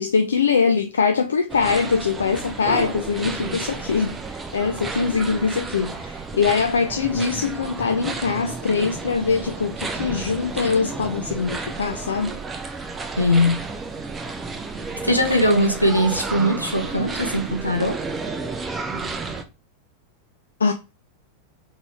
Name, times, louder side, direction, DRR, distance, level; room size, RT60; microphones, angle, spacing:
voice 1, 0.0-12.4 20.6-20.7, left 5 dB, 70° left, 0.4 m, -22 dB
sound 1, 1.5-19.4, right 3 dB, 15° right, 0.6 m, -32 dB
voice 2, 13.2-13.6 15.0-18.0, left 1 dB, 85° left, 0.9 m, -20 dB
4.0 x 3.1 x 3.2 m
figure-of-eight pair, 90°, 0 cm